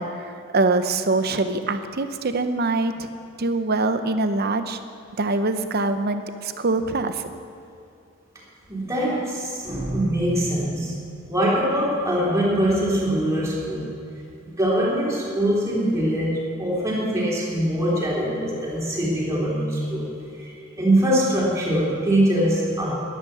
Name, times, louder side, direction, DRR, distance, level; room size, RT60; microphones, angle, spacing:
voice 1, 0.0-3.1 3.4-4.8 5.2-7.2, right 2 dB, 50° right, 9 dB, 0.8 m, -24 dB
voice 2, 8.7-11.0 11.3-13.9 14.4-22.9, right 1 dB, 15° right, -6 dB, 3.3 m, -23 dB
12.0 x 11.0 x 6.8 m, 2.7 s
head